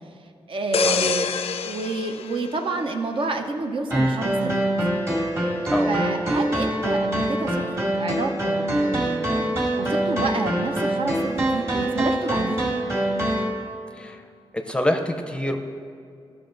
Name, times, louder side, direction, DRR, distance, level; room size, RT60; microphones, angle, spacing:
voice 1, 0.5-1.3 1.6-4.7 5.9-7.6 7.9-9.4 9.8-12.7, right 3 dB, 65° right, 4 dB, 0.7 m, -29 dB
sound 1, 0.7-3.4 3.9-4.1, left 7 dB, 90° left, 0.4 m, -28 dB
sound 2, 3.9-13.5, right 1 dB, 30° right, 1.8 m, -24 dB
voice 2, 5.7-6.0 14.0-14.2 14.7-15.6, left 1 dB, 10° left, 5 dB, 0.6 m, -25 dB
14.0 x 5.8 x 3.9 m, 2.4 s
wide cardioid pair, 120°, 10 cm